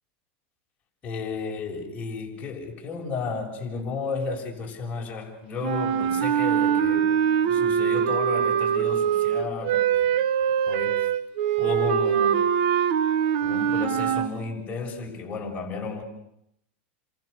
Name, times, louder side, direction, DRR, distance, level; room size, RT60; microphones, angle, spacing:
voice 1, 1.0-11.1 11.6-12.3 13.4-16.0, left 4 dB, 25° left, -1 dB, 6.8 m, -33 dB
sound 1, 5.6-14.3, right 9 dB, 65° right, 2.0 m, -23 dB
29.5 x 26.0 x 6.8 m, 0.77 s
supercardioid pair, 135°, 6 cm